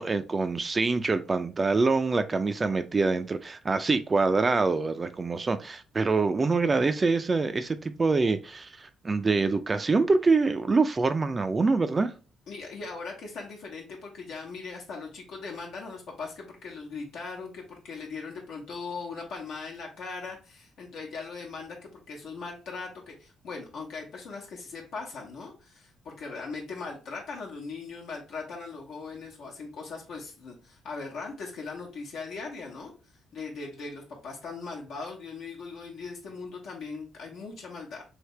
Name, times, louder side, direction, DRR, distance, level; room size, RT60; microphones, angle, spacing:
voice 1, 0.0-12.1, right 3 dB, 30° right, 9 dB, 0.3 m, -25 dB
voice 2, 12.5-32.9 33.3-38.0, left 4 dB, 80° left, -2 dB, 1.0 m, -39 dB
3.3 x 2.7 x 3.1 m, 0.34 s
cardioid pair, 90°, 0 cm